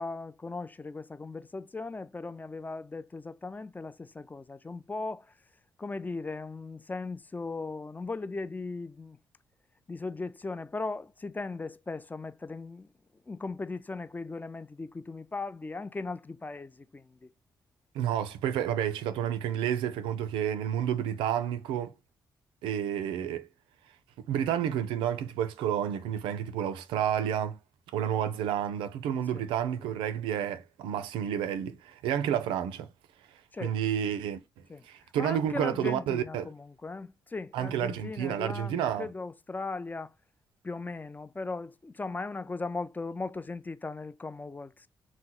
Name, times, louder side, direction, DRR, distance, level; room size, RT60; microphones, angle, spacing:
voice 1, 0.0-5.4 5.8-9.2 9.9-17.3 29.3-29.5 29.8-29.9 33.5-33.8 34.7-40.1 40.6-44.9, left 3 dB, 20° left, 0.3 m, -38 dB
voice 2, 17.9-21.9 22.6-23.5 24.3-27.6 27.9-32.9 33.6-34.4 34.9-36.5 37.5-39.1, right 9 dB, 85° right, 0.4 m, -30 dB
2.9 x 2.0 x 3.7 m
supercardioid pair, 60°, 8 cm